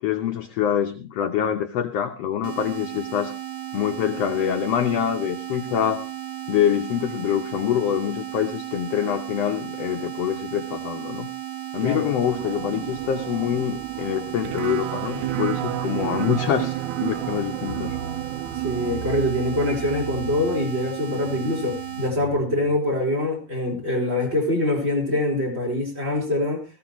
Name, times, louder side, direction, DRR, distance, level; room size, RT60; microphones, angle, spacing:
voice 1, 0.0-3.3 3.7-6.0 6.5-11.3 11.7-18.0, left 9 dB, 75° left, 5 dB, 1.5 m, -25 dB
sound 1, 2.4-22.1, right 12 dB, 55° right, 1.7 m, -35 dB
sound 2, 12.2-19.1, right 13 dB, 70° right, 2.0 m, -30 dB
sound 3, 17.7-22.7, right 4 dB, 90° right, 4.3 m, -37 dB
voice 2, 18.6-26.6, left 1 dB, 30° right, 2 dB, 4.8 m, -24 dB
18.5 x 15.5 x 3.0 m, 0.29 s
omnidirectional pair, 4.0 m